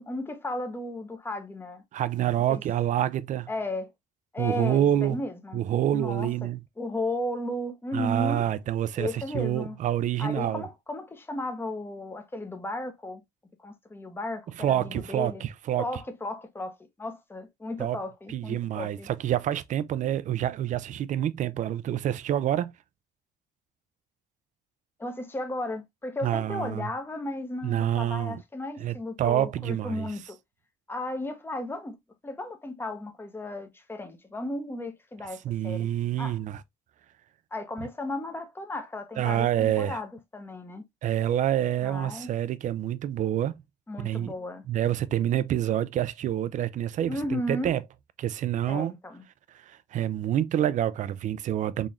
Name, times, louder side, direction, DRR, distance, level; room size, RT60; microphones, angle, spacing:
voice 1, 0.0-1.8 2.5-2.6 3.5-3.9 4.3-5.6 5.9-6.5 6.8-8.5 9.0-9.8 10.2-13.2 13.6-15.4 15.8-19.1 25.0-30.4 30.9-32.0 32.2-35.9 36.2-36.4 37.5-40.8 41.8-42.3 43.9-44.6 47.1-47.8 48.7-49.2, left 1 dB, 15° left, 0.9 m, -34 dB
voice 2, 1.9-3.5 4.4-5.2 5.5-6.6 7.9-10.7 14.6-15.9 17.8-18.0 18.3-22.7 26.2-26.9 27.6-28.4 28.8-30.1 35.4-36.6 39.2-40.0 41.0-43.6 44.0-44.3 44.7-47.8 48.2-48.9 49.5-51.9, right 11 dB, 50° right, 0.4 m, -27 dB
3.8 x 3.0 x 2.4 m
cardioid pair, 110°, 17 cm